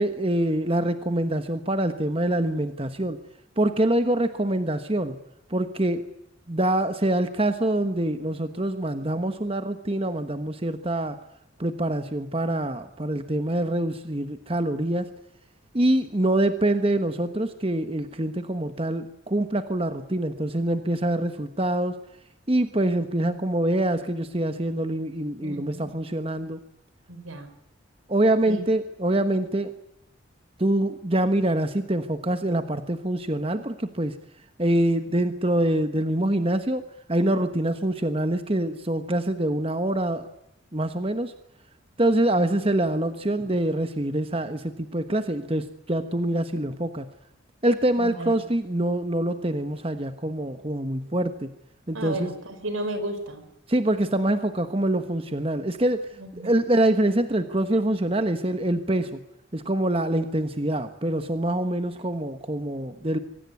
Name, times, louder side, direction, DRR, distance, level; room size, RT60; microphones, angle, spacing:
voice 1, 0.0-3.2 3.6-5.2 5.5-6.0 6.5-11.2 11.6-15.1 15.7-22.0 22.5-26.6 28.1-29.7 30.6-34.2 34.6-40.3 40.7-41.3 42.0-47.1 47.6-51.5 51.9-52.3 53.7-56.1 56.4-59.2 59.5-63.2, right 1 dB, 25° right, 9 dB, 1.2 m, -25 dB
voice 2, 25.4-25.9 27.1-27.5 28.4-28.6 48.0-48.4 51.9-53.4 56.2-56.5, right 2 dB, 85° right, 10 dB, 4.9 m, -33 dB
24.5 x 18.0 x 9.5 m, 0.85 s
head